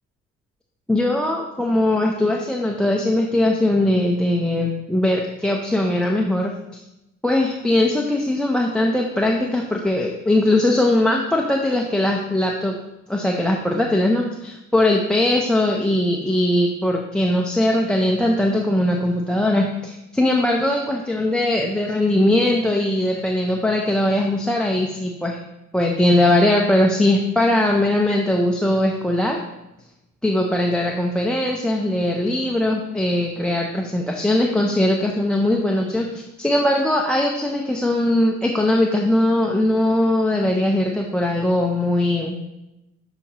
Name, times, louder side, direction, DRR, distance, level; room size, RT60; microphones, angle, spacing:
voice 1, 0.9-6.8 7.2-12.7 13.1-25.4 25.7-29.4 30.2-42.4, left 1 dB, 5° left, 1 dB, 0.5 m, -20 dB
6.9 x 4.9 x 2.9 m, 0.92 s
cardioid pair, 90°, 30 cm